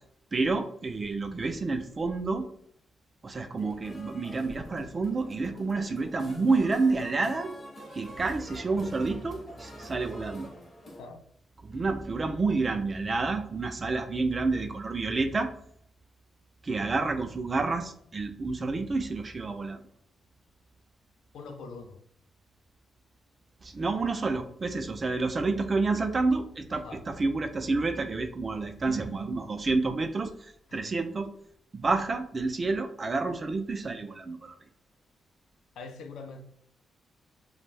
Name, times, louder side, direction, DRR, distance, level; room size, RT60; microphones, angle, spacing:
voice 1, 0.3-2.5 3.2-7.5 7.9-10.5 11.6-15.5 16.6-19.8 23.6-31.3 31.7-34.5, right 3 dB, 30° right, 0.3 m, -29 dB
sound 1, 3.6-11.0, equal, 25° left, 0.6 m, -47 dB
voice 2, 21.3-22.0 26.7-27.0 30.7-30.8 35.8-36.4, left 4 dB, 85° left, 0.4 m, -43 dB
2.5 x 2.0 x 3.2 m
cardioid pair, 130°, 0 cm